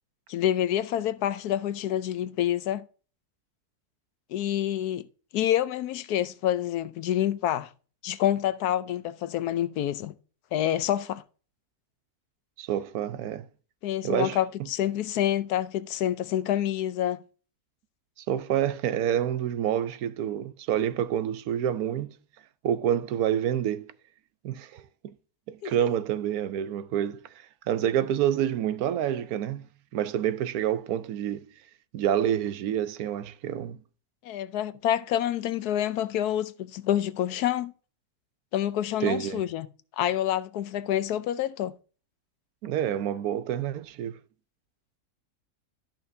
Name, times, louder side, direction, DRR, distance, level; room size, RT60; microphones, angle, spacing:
voice 1, 0.3-2.8 4.3-5.1 5.3-7.7 8.0-10.1 10.5-11.2 13.8-17.2 25.6-25.9 34.2-37.7 38.5-39.7 40.0-41.8, left 11 dB, 80° left, 1.2 m, -27 dB
voice 2, 12.6-13.5 14.0-14.4 18.2-22.1 22.6-23.9 24.4-25.1 25.5-27.2 27.7-29.6 29.9-31.4 31.9-33.8 39.0-39.5 42.6-44.2, right 10 dB, 75° right, 1.1 m, -28 dB
13.0 x 5.8 x 2.6 m
omnidirectional pair, 1.6 m